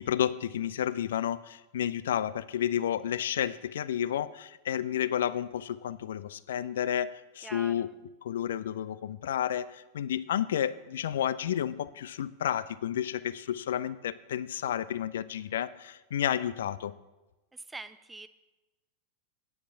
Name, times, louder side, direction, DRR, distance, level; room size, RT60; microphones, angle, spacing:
voice 1, 0.0-7.9 8.2-16.9, left 10 dB, 60° left, 17 dB, 0.4 m, -31 dB
voice 2, 7.4-7.9 17.5-18.3, right 3 dB, 10° right, 13 dB, 0.5 m, -44 dB
9.5 x 5.9 x 7.0 m, 1.1 s
figure-of-eight pair, 90°, 0 cm